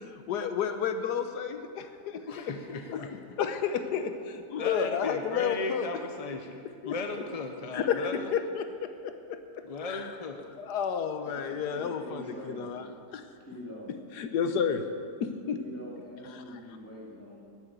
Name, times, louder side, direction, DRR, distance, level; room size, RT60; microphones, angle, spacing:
voice 1, 0.3-2.5 2.9-3.1 3.4-5.9 6.8-6.9 7.7-8.1 8.3-10.1 10.5-12.9 13.1-13.2 14.2-14.8 15.2-15.6 16.2-16.4, left 7 dB, 85° left, 8 dB, 1.4 m, -31 dB
voice 2, 2.3-3.2 4.6-6.6 6.8-8.3 9.6-10.4, left 3 dB, 40° left, 5 dB, 0.5 m, -36 dB
voice 3, 11.2-12.7 13.5-13.9 15.6-17.4, equal, 10° left, -4 dB, 2.9 m, -44 dB
11.0 x 9.8 x 8.1 m, 2.5 s
omnidirectional pair, 1.7 m